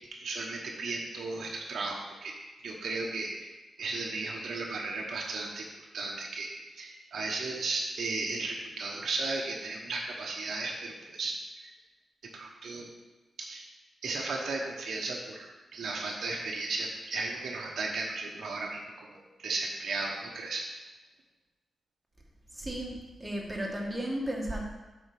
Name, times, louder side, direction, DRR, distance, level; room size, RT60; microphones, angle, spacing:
voice 1, 0.1-2.3 2.6-3.5 3.8-5.7 5.9-6.5 6.8-11.7 12.3-12.9 13.4-13.7 14.0-20.6, right 3 dB, 70° right, -1 dB, 1.1 m, -35 dB
voice 2, 22.5-24.6, right 1 dB, 10° right, -2 dB, 1.5 m, -34 dB
8.0 x 4.4 x 5.9 m, 1.2 s
wide cardioid pair, 125°, 0 cm